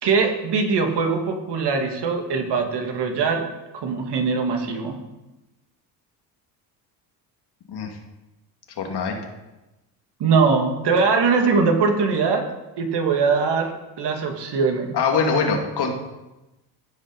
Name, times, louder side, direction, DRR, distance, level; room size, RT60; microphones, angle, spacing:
voice 1, 0.0-3.5 3.7-5.0 10.2-12.5 12.8-15.0, right 5 dB, 60° right, 3 dB, 2.2 m, -21 dB
voice 2, 8.8-9.2 14.9-15.9, left 5 dB, 60° left, 2 dB, 2.5 m, -23 dB
15.0 x 5.6 x 5.3 m, 1.0 s
supercardioid pair, 65°, 45 cm